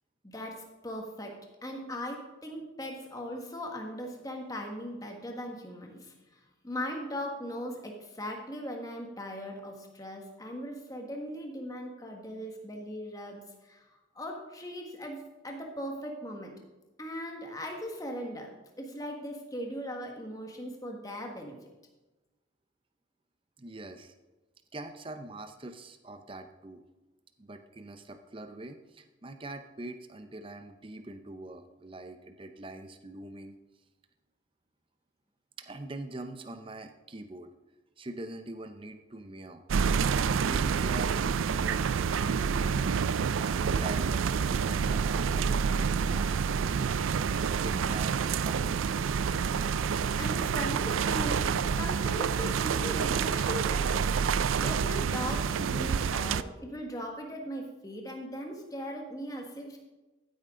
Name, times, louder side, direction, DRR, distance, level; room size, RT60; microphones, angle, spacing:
voice 1, 0.2-1.4 1.6-13.8 14.1-16.5 17.0-18.5 18.8-21.5 50.2-54.1 54.6-59.8, equal, 20° left, 2 dB, 1.6 m, -39 dB
voice 2, 23.6-24.1 24.7-26.8 27.4-33.6 35.6-37.5 38.0-39.6 40.2-42.9 43.4-47.0 47.6-48.9, right 2 dB, 25° right, 7 dB, 0.6 m, -43 dB
sound 1, 39.7-56.4, right 6 dB, 90° right, 0.4 m, -28 dB
14.5 x 8.8 x 3.8 m, 1.1 s
head